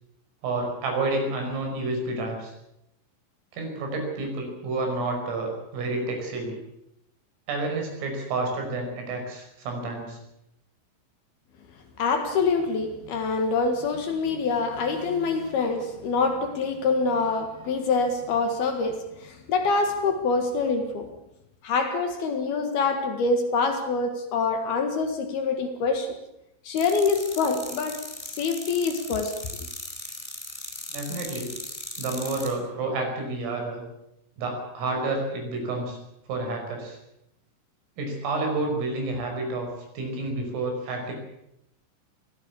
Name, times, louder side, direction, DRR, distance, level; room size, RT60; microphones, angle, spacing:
voice 1, 0.4-2.5 3.5-6.6 7.5-10.2 30.9-31.5 32.0-33.8 34.4-36.0 36.3-37.0 38.0-41.1, right 2 dB, 80° right, 8.2 m, -29 dB
voice 2, 12.0-21.1 21.6-26.2 26.6-29.4, left 4 dB, 60° left, 3.2 m, -25 dB
sound 1, 26.8-32.5, left 1 dB, 10° left, 2.6 m, -38 dB
23.0 x 16.5 x 8.5 m
omnidirectional pair, 5.8 m